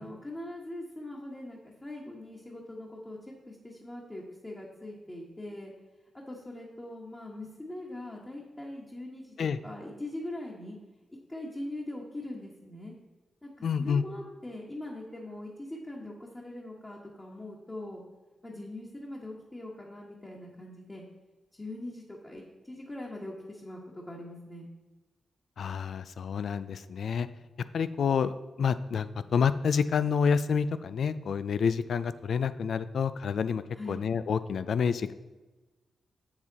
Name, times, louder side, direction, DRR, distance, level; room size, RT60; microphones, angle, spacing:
voice 1, 0.0-5.7 6.1-10.8 11.3-12.9 13.4-18.0 18.4-21.0 21.5-24.7 33.7-34.0, left 1 dB, 20° left, -3 dB, 1.5 m, -42 dB
voice 2, 13.6-14.0 25.6-27.3 27.7-28.3 28.6-33.6 33.9-35.1, left 6 dB, 70° left, 14 dB, 0.4 m, -28 dB
7.4 x 7.2 x 4.1 m, 1.2 s
cardioid pair, 80°, 0 cm